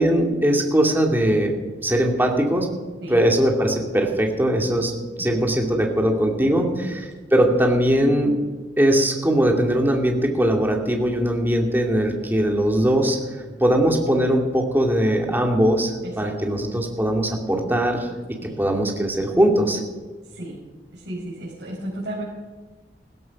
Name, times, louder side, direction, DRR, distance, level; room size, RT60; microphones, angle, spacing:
voice 1, 0.0-1.5 1.8-2.7 3.1-4.9 5.2-8.3 8.8-13.2 13.6-18.1 18.4-19.8, right 1 dB, 10° right, 1 dB, 2.3 m, -20 dB
voice 2, 16.0-16.5 18.4-18.6 20.3-20.6 20.9-22.2, right 1 dB, 70° right, -6 dB, 5.0 m, -34 dB
16.0 x 14.0 x 5.9 m, 1.3 s
head